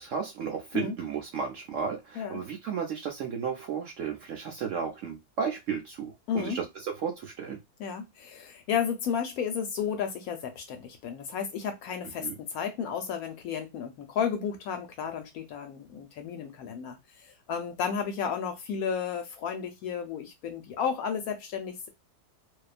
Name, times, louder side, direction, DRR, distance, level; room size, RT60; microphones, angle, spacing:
voice 1, 0.0-7.6 12.2-12.4, right 6 dB, 70° right, 0.7 m, -33 dB
voice 2, 6.3-6.6 7.8-21.9, left 7 dB, 70° left, 1.0 m, -33 dB
2.6 x 2.2 x 2.4 m
omnidirectional pair, 1.7 m